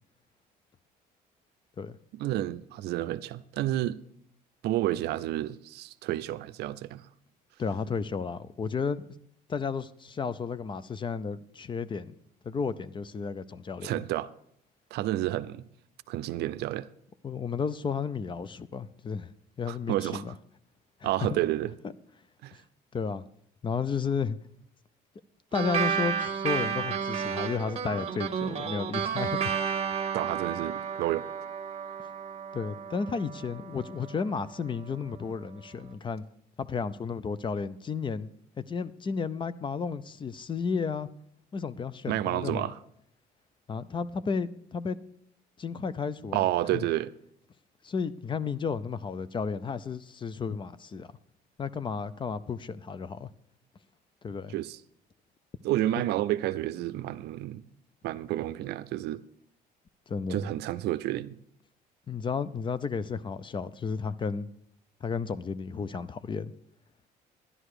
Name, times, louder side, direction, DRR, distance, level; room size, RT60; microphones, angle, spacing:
voice 1, 2.1-4.0 4.6-7.0 13.8-14.3 14.9-15.6 16.1-16.9 19.7-20.2 21.0-21.7 22.4-22.5 30.1-31.3 42.1-42.8 46.3-47.1 54.5-54.8 55.6-57.7 58.0-59.2 60.3-61.4, right 14 dB, 80° right, 0.5 m, -30 dB
voice 2, 7.6-9.2 9.5-12.1 12.4-14.0 17.2-19.3 19.6-20.3 21.0-21.3 22.9-23.2 23.6-24.4 25.5-29.5 32.5-36.2 36.6-38.3 38.7-41.1 41.5-42.7 43.7-45.0 45.6-46.5 46.7-46.8 47.8-51.1 51.6-53.3 54.2-54.5 60.1-60.5 62.1-64.5 65.0-66.5, left 5 dB, 30° left, 0.5 m, -33 dB
sound 1, 25.5-34.4, right 7 dB, 40° right, 1.3 m, -32 dB
11.0 x 11.0 x 4.8 m
cardioid pair, 110°, 17 cm